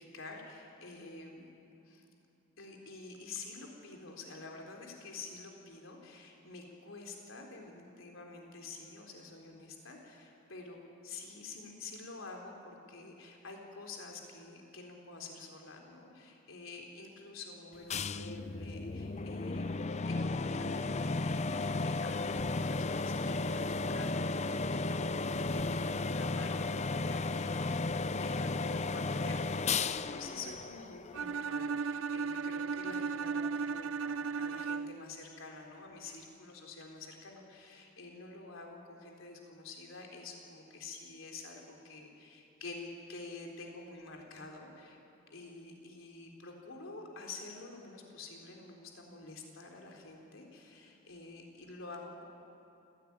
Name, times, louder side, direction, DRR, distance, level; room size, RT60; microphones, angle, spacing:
voice 1, 0.0-1.5 1.9-2.0 2.6-25.0 25.5-27.8 28.1-45.0 45.3-52.2, left 3 dB, 75° left, 1 dB, 3.7 m, -48 dB
sound 1, 17.9-31.4, left 3 dB, 35° left, 0.5 m, -34 dB
Bowed string instrument, 31.1-35.1, right 5 dB, 75° right, 0.5 m, -35 dB
28.0 x 16.5 x 9.6 m, 2.7 s
head